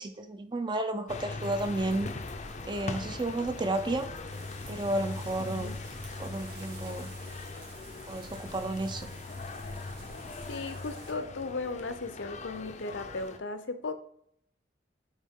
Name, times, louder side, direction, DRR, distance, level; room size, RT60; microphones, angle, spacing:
voice 1, 0.0-2.1 2.6-4.1 4.7-5.8 6.2-7.1 8.1-9.1, right 1 dB, 25° right, 9 dB, 0.5 m, -32 dB
sound 1, 1.1-13.4, left 3 dB, 40° left, 0.5 m, -40 dB
sound 2, 1.4-10.6, right 1 dB, 90° right, 2.0 m, -53 dB
sound 3, 4.3-11.1, right 3 dB, 60° right, 2.5 m, -52 dB
voice 2, 5.4-5.7 10.5-13.9, left 3 dB, 75° left, 10 dB, 0.7 m, -36 dB
8.1 x 3.6 x 3.6 m, 0.67 s
head